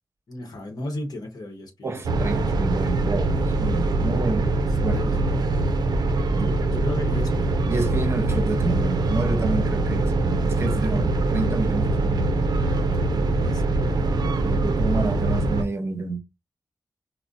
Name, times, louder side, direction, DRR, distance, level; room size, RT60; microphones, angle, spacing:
voice 1, 0.3-2.4 4.6-5.4 6.4-7.5 10.7-11.1 12.5-14.7, left 1 dB, 75° left, 0.9 m, -36 dB
voice 2, 1.8-4.5 4.8-5.0 6.4-6.5 7.7-12.5 14.4-16.2, right 3 dB, 40° right, 0.7 m, -29 dB
sound 1, 2.0-15.6, right 2 dB, 85° right, 0.4 m, -23 dB
3.8 x 2.0 x 2.4 m
wide cardioid pair, 100°, 7 cm